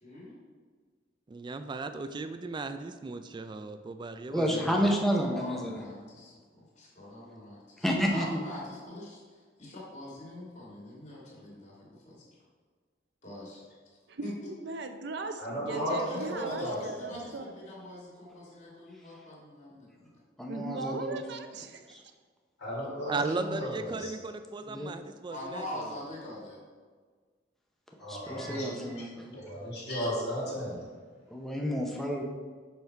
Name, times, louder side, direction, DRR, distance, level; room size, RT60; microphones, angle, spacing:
voice 1, 0.0-0.4 4.4-9.2 9.6-12.2 13.2-13.6 14.2-14.5 15.7-20.1 25.3-26.6, left 1 dB, 40° left, -5 dB, 2.2 m, -42 dB
voice 2, 1.3-4.9 23.1-25.8, right 3 dB, 25° right, 9 dB, 0.3 m, -36 dB
voice 3, 4.3-5.8 7.8-8.4 20.4-21.2 21.9-22.0 24.7-24.9 28.1-29.1 31.3-32.2, equal, ahead, 0 dB, 0.7 m, -30 dB
voice 4, 14.6-17.5 20.5-22.0, right 3 dB, 65° right, 7 dB, 0.6 m, -38 dB
voice 5, 15.4-17.2 22.6-24.1 28.0-28.8 29.5-30.8, equal, 65° left, -6 dB, 2.1 m, -35 dB
5.9 x 5.6 x 4.6 m, 1.5 s
head